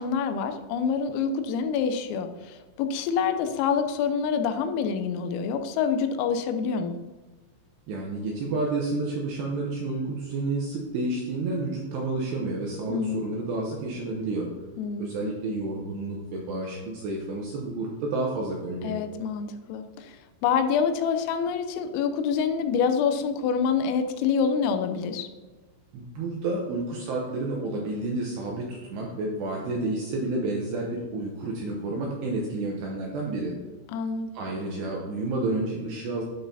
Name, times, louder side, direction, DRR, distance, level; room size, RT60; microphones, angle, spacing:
voice 1, 0.0-7.0 12.9-13.2 14.8-15.0 18.8-20.2 20.4-25.3 33.9-34.3, left 6 dB, 90° left, 8 dB, 3.3 m, -26 dB
voice 2, 7.9-14.5 15.0-19.0 25.9-33.5 34.3-36.2, right 2 dB, 80° right, -1 dB, 2.5 m, -30 dB
11.5 x 6.2 x 2.7 m, 1.3 s
omnidirectional pair, 5.8 m